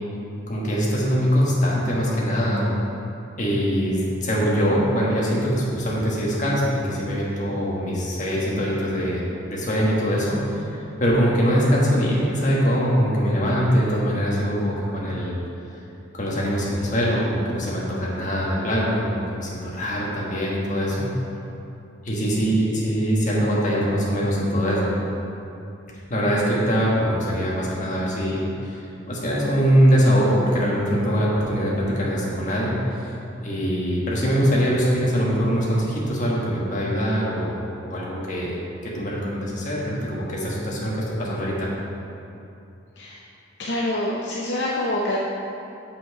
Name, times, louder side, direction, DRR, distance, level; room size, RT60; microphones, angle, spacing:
voice 1, 0.5-2.8 3.4-15.3 16.1-21.1 22.0-24.9 26.1-28.8 29.1-32.8 33.4-38.6 38.8-41.7, equal, 40° left, -5 dB, 1.6 m, -22 dB
voice 2, 43.6-45.2, left 1 dB, 60° left, -4 dB, 0.7 m, -26 dB
7.2 x 5.7 x 4.8 m, 2.7 s
head